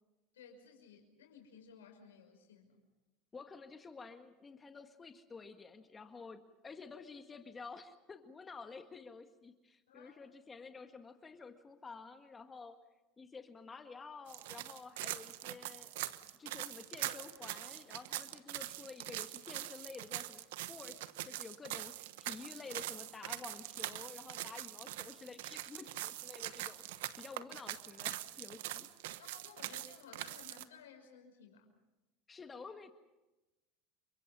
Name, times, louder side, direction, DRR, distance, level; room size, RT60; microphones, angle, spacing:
voice 1, 0.3-2.8 9.9-10.1 27.2-27.3 29.2-31.7, left 6 dB, 85° left, 3 dB, 5.8 m, -57 dB
voice 2, 3.3-12.8 13.2-15.9 16.4-21.0 21.3-26.8 27.2-28.9 32.3-32.9, left 4 dB, 25° left, 7 dB, 1.8 m, -51 dB
sound 1, 14.3-30.6, right 15 dB, 75° right, 1.1 m, -43 dB
29.0 x 24.5 x 5.6 m, 1.1 s
hypercardioid pair, 90°, 0 cm